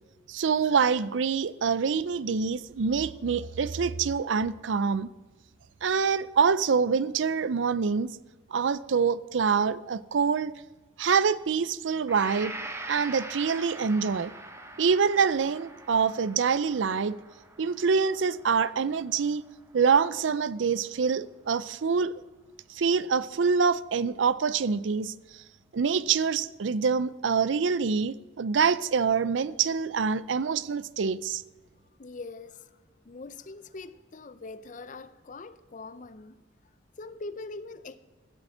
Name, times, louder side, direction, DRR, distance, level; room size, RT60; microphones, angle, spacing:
voice 1, 0.3-5.1 5.8-8.2 8.5-10.5 11.0-12.6 12.9-14.3 14.8-17.1 17.6-19.4 19.7-22.1 22.7-25.1 25.7-31.4, right 5 dB, 75° right, 0.5 m, -25 dB
Gong, 12.1-20.1, right 2 dB, 15° right, 0.9 m, -43 dB
voice 2, 32.0-32.7 33.0-36.4 37.0-38.0, left 3 dB, 40° left, 0.5 m, -42 dB
15.0 x 7.1 x 7.9 m
head